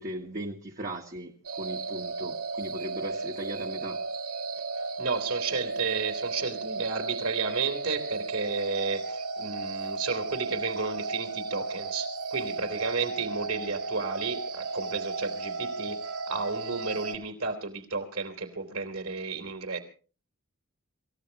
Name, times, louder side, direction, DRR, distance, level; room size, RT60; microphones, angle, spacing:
voice 1, 0.0-1.3 1.6-4.0, right 1 dB, 40° right, 1.5 m, -38 dB
sound 1, 1.4-17.1, right 3 dB, 80° right, 2.0 m, -34 dB
voice 2, 4.8-19.8, right 4 dB, 65° right, 3.6 m, -32 dB
27.5 x 15.5 x 3.0 m
head